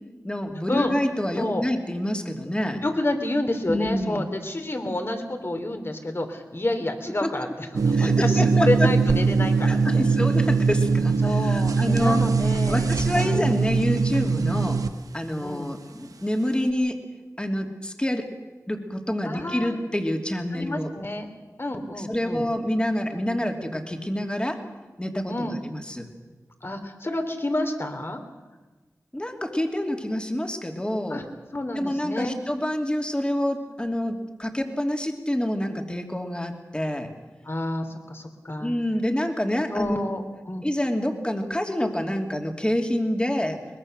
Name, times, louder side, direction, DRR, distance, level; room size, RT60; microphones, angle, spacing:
voice 1, 0.2-2.8 3.7-4.3 7.2-7.3 7.9-8.9 9.6-12.2 12.7-14.8 15.1-17.0 17.4-18.3 18.7-20.9 22.0-24.6 25.0-26.1 29.1-31.2 31.7-37.1 38.6-40.1 40.6-43.6, left 1 dB, 15° left, 3 dB, 2.9 m, -27 dB
voice 2, 2.8-10.0 11.2-13.5 14.5-14.7 15.4-15.7 19.2-19.8 20.5-21.3 21.6-22.5 25.3-25.6 26.6-28.2 31.1-31.2 31.5-32.4 37.4-38.7 39.7-40.6, left 1 dB, 40° left, 6 dB, 3.2 m, -29 dB
sound 1, 7.7-14.9, right 4 dB, 85° right, 1.0 m, -21 dB
23.0 x 20.5 x 6.7 m, 1.2 s
wide cardioid pair, 55°, 6 cm